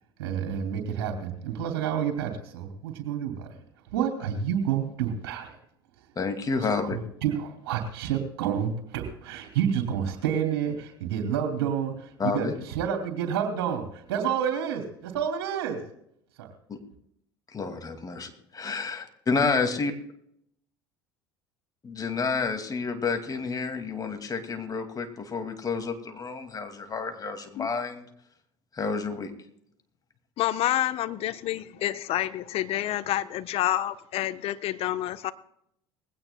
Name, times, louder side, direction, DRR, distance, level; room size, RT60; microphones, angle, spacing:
voice 1, 0.2-3.5 3.9-5.6 7.2-15.8 16.4-16.5, right 8 dB, 70° right, 4 dB, 2.7 m, -29 dB
voice 2, 6.2-7.0 12.2-12.5 16.7-16.8 17.5-19.9 21.8-28.0 28.7-29.3, left 4 dB, 30° left, 6 dB, 2.2 m, -30 dB
voice 3, 30.4-35.3, left 13 dB, 55° left, 13 dB, 0.9 m, -28 dB
20.5 x 16.5 x 2.2 m, 0.73 s
hypercardioid pair, 70°, 12 cm